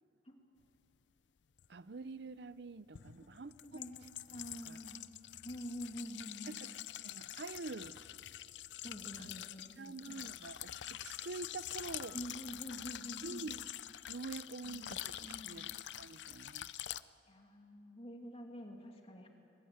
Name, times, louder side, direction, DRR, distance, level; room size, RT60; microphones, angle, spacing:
sound 1, 1.6-1.7 2.9-17.0, left 12 dB, 80° left, 0.5 m, -46 dB
voice 1, 1.7-3.8 4.7-4.8 6.5-8.0 9.2-9.3 9.8-12.1 13.2-13.6 14.1-16.7, right 3 dB, 65° right, 17 dB, 0.6 m, -47 dB
voice 2, 3.3-5.0 5.4-6.6 8.8-10.3 12.1-13.5 14.6-15.7 17.2-19.3, equal, 35° left, 2 dB, 2.6 m, -48 dB
22.5 x 20.5 x 9.5 m, 2.7 s
head